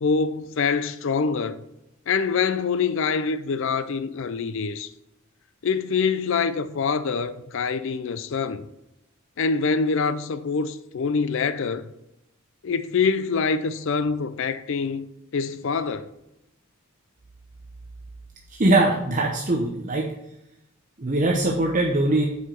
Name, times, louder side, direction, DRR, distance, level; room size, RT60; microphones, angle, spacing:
voice 1, 0.0-1.6 2.1-4.9 5.6-8.7 9.4-11.8 12.6-16.1, left 5 dB, 60° left, 0.4 m, -25 dB
voice 2, 18.5-20.1 21.0-22.3, right 2 dB, 35° right, 0.8 m, -21 dB
8.2 x 4.9 x 4.4 m
head